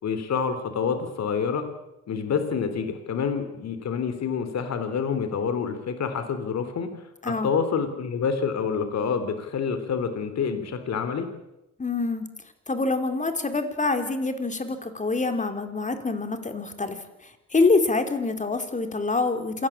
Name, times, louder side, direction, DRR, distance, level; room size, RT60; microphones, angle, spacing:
voice 1, 0.0-1.7 2.1-11.3, left 6 dB, 60° left, 9 dB, 3.6 m, -27 dB
voice 2, 11.8-12.3 12.7-17.0 17.2-19.7, left 3 dB, 25° left, 7 dB, 4.1 m, -25 dB
27.0 x 19.0 x 8.9 m, 0.92 s
cardioid pair, 90°, 30 cm